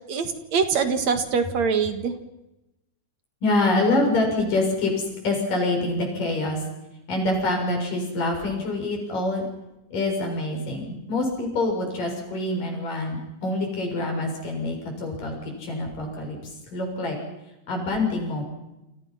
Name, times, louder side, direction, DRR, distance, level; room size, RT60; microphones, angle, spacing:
voice 1, 0.1-2.1, right 5 dB, 60° right, 8 dB, 2.9 m, -24 dB
voice 2, 3.4-6.6 7.1-9.5 9.9-17.2 17.7-18.4, left 2 dB, 85° left, 2 dB, 8.5 m, -26 dB
29.0 x 26.5 x 5.8 m, 0.95 s
omnidirectional pair, 3.7 m